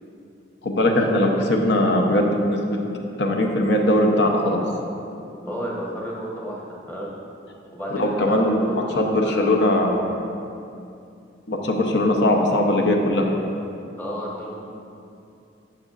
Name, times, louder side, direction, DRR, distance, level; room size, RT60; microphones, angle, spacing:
voice 1, 0.6-2.8 3.2-4.6 8.0-10.1 11.5-13.3, left 1 dB, 65° left, 1 dB, 0.8 m, -20 dB
voice 2, 5.4-7.1 7.7-9.6 14.0-14.7, equal, 10° left, -5 dB, 1.0 m, -32 dB
10.5 x 6.8 x 2.5 m, 2.6 s
head